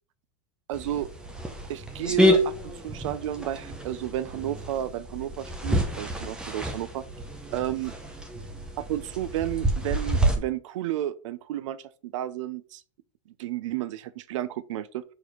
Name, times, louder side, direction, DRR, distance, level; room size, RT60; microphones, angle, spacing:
sound 1, 0.7-10.3, equal, 5° right, 0.8 m, -28 dB
voice 1, 0.7-1.1 1.7-7.0 7.5-7.9 8.8-12.8 13.4-15.0, right 12 dB, 70° right, 0.7 m, -32 dB
6.2 x 5.0 x 5.1 m
supercardioid pair, 175°, 17 cm